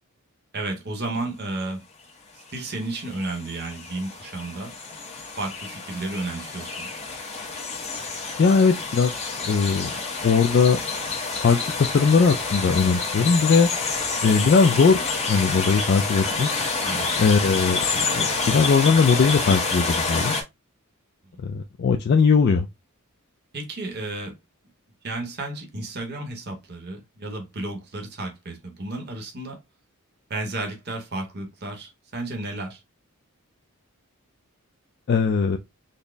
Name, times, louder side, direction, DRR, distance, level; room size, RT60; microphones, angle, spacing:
voice 1, 0.5-1.8 2.3-4.7 5.4-6.9 16.8-17.3 21.3-21.5 23.5-24.3 25.0-29.6 30.3-32.8, right 2 dB, 45° right, 0.9 m, -32 dB
sound 1, 2.4-20.4, left 4 dB, 30° left, 0.8 m, -28 dB
voice 2, 8.4-9.1 9.4-10.8 11.4-13.7 14.2-16.5 17.2-20.4 21.4-22.7 35.1-35.6, left 5 dB, 45° left, 0.3 m, -20 dB
4.0 x 2.0 x 3.3 m
head